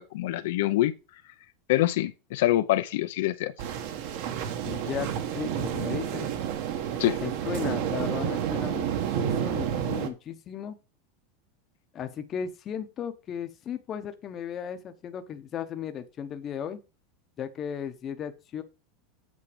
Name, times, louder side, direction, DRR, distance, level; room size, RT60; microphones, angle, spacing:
voice 1, 0.1-0.9 1.7-3.5 7.0-7.2, left 15 dB, 65° left, 0.6 m, -25 dB
sound 1, 3.6-10.1, right 9 dB, 50° right, 1.3 m, -30 dB
voice 2, 4.6-6.3 7.2-10.8 11.9-16.8 17.4-18.6, left 8 dB, 20° left, 0.9 m, -36 dB
8.5 x 5.9 x 5.0 m
supercardioid pair, 175°, 0 cm